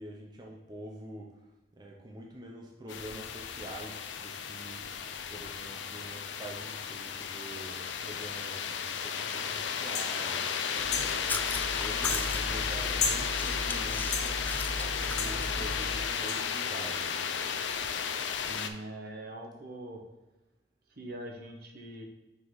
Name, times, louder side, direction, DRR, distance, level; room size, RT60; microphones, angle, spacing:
voice 1, 0.0-1.3 1.7-4.9 5.3-14.4 14.7-17.3, right 1 dB, 25° right, -1 dB, 0.7 m, -46 dB
sound 1, 2.9-18.7, left 7 dB, 75° left, 0.5 m, -34 dB
sound 2, 9.9-10.1 10.9-11.1 12.0-12.2 13.0-13.2 14.1-14.3 15.2-15.3 16.3-16.4, left 5 dB, 40° left, 0.9 m, -31 dB
Chewing mastication, 10.8-16.1, left 2 dB, 10° left, 0.3 m, -37 dB
voice 2, 18.5-20.0 21.0-22.0, right 1 dB, 60° right, 2 dB, 1.0 m, -42 dB
5.2 x 3.9 x 4.7 m, 1.1 s
head